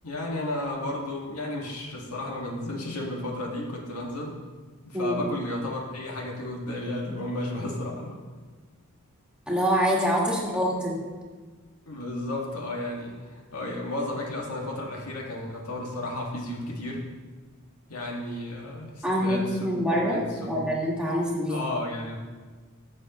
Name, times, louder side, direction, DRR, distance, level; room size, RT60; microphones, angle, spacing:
voice 1, 0.0-4.4 4.8-8.2 11.9-17.1 17.9-20.7 21.5-22.2, left 1 dB, 90° left, -2 dB, 1.8 m, -33 dB
voice 2, 9.5-11.0 19.0-21.6, equal, 5° right, -5 dB, 1.7 m, -25 dB
15.0 x 6.4 x 3.0 m, 1.4 s
head